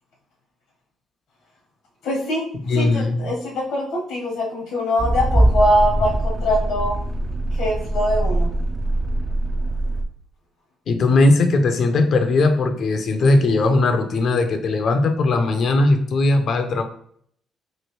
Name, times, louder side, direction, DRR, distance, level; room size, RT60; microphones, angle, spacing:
voice 1, 2.0-2.5 2.7-7.0 7.5-8.5, equal, 80° left, -2 dB, 1.1 m, -22 dB
voice 2, 2.7-3.3 10.9-16.8, left 2 dB, 65° left, 6 dB, 0.6 m, -18 dB
sound 1, 5.0-10.0, right 1 dB, 35° right, 0.4 m, -22 dB
3.1 x 2.5 x 3.1 m, 0.63 s
supercardioid pair, 65°, 0 cm